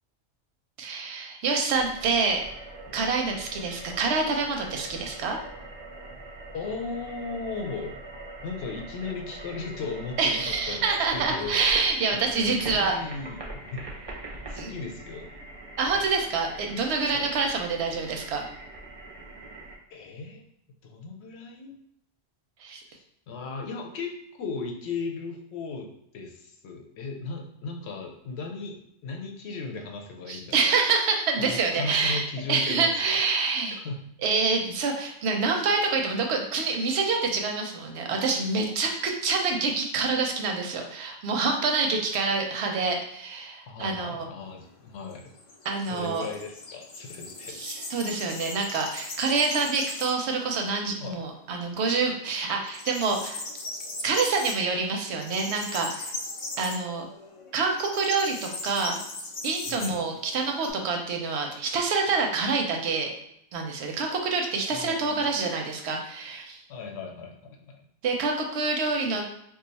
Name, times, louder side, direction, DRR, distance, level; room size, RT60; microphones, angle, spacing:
voice 1, 0.8-2.4 2.9-5.4 10.2-13.0 14.6-14.7 15.8-18.5 22.6-22.8 30.3-32.2 32.5-33.8 34.2-44.3 45.6-46.3 47.5-53.4 54.0-56.1 56.6-57.1 57.5-59.0 59.4-63.1 63.5-66.6 68.0-69.2, right 4 dB, 90° right, 3 dB, 0.9 m, -27 dB
sound 1, 1.7-19.7, right 2 dB, 35° right, 0.5 m, -42 dB
voice 2, 6.5-8.0 8.4-10.8 11.1-11.6 12.1-14.2 14.5-15.3 17.1-17.3 19.9-20.4 20.8-21.8 22.9-24.1 24.4-25.9 26.1-30.7 31.4-33.2 33.7-34.0 43.7-45.3 45.9-47.6 51.0-51.2 59.7-60.0 64.7-65.3 66.7-67.6, left 4 dB, 85° left, 2 dB, 0.9 m, -36 dB
sound 2, 44.4-50.3 50.7-50.8 51.2-52.0 52.2-60.7, left 2 dB, 50° left, 0.4 m, -39 dB
2.5 x 2.3 x 3.9 m, 0.74 s
omnidirectional pair, 1.1 m